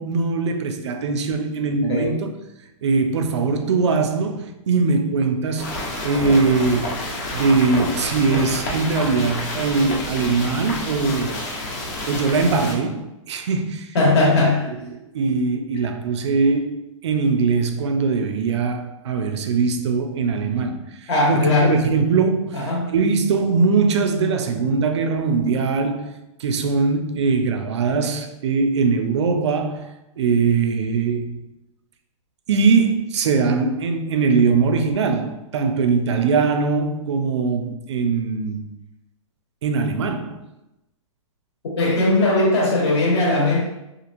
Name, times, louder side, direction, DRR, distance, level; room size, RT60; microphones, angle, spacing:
voice 1, 0.0-2.3 2.8-5.8 6.0-7.0 7.3-11.4 12.1-13.9 14.2-14.3 15.1-26.1 26.4-29.9 30.2-31.4 32.5-38.6 39.6-40.4, right 4 dB, 55° right, 0.4 m, -21 dB
voice 2, 1.9-2.2 13.9-14.6 21.1-21.8 22.5-22.9 41.7-43.6, left 2 dB, 50° left, 1.1 m, -19 dB
sound 1, 5.6-12.7, left 1 dB, 30° left, 0.5 m, -29 dB
2.9 x 2.4 x 2.5 m
hypercardioid pair, 165°, 17 cm